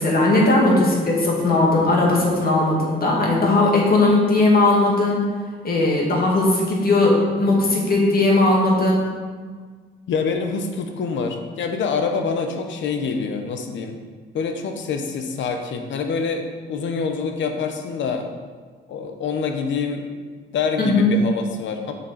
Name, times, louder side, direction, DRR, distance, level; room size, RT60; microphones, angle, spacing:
voice 1, 0.0-5.2 5.6-9.1 20.8-21.1, left 2 dB, 50° left, -2 dB, 2.2 m, -18 dB
voice 2, 10.1-14.0 14.3-18.3 18.9-20.1 20.5-21.9, left 5 dB, 70° left, 5 dB, 1.0 m, -26 dB
7.0 x 6.8 x 4.3 m, 1.6 s
cardioid pair, 90°, 20 cm